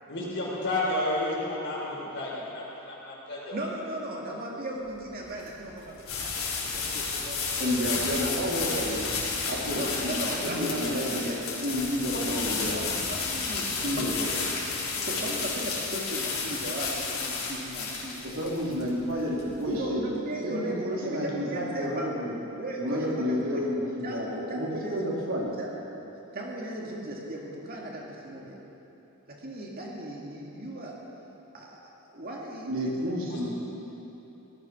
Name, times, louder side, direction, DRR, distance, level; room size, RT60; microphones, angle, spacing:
voice 1, 0.1-3.6 33.3-33.5, left 1 dB, 55° left, -5 dB, 4.7 m, -31 dB
voice 2, 3.5-8.3 9.7-11.4 12.1-12.7 13.1-14.3 15.0-18.4 19.7-22.1 22.6-23.7 24.0-25.1 25.6-25.7 26.3-28.6 29.3-31.0 31.5-33.5, right 1 dB, 45° right, -2 dB, 2.1 m, -37 dB
sound 1, 4.9-19.8, left 4 dB, 70° left, 4.0 m, -32 dB
voice 3, 7.6-9.1 9.4-11.3 11.6-13.0 13.8-14.4 18.2-20.1 20.4-22.3 22.8-25.5 32.7-33.5, equal, 65° right, -4 dB, 3.3 m, -30 dB
18.0 x 12.5 x 6.1 m, 2.9 s
head